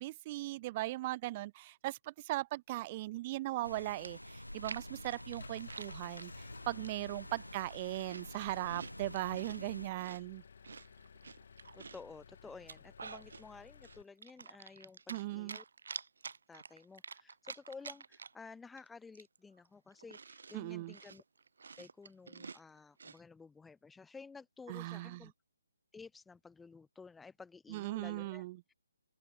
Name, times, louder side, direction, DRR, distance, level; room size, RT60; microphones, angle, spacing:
voice 1, 0.0-6.3 6.7-10.4 15.1-15.6 20.5-20.9 24.7-25.2 27.7-28.6, right 18 dB, 25° right, 0.4 m, -38 dB
sound 1, 3.6-9.9, left 1 dB, 85° left, 0.9 m, -48 dB
Chewing mastication, 4.0-6.3 6.8-7.2 7.5-9.6 10.0-12.1 12.5-13.4 13.8-15.2 15.5-18.5 18.8-18.9 19.1-23.2, right 5 dB, 55° right, 1.7 m, -49 dB
Engine, 5.0-14.0, left 6 dB, 50° left, 0.8 m, -57 dB
voice 2, 11.7-15.6 16.5-21.2 21.8-25.3 25.9-28.4, left 4 dB, 5° left, 2.2 m, -53 dB
open air
figure-of-eight pair, 140°, 0 cm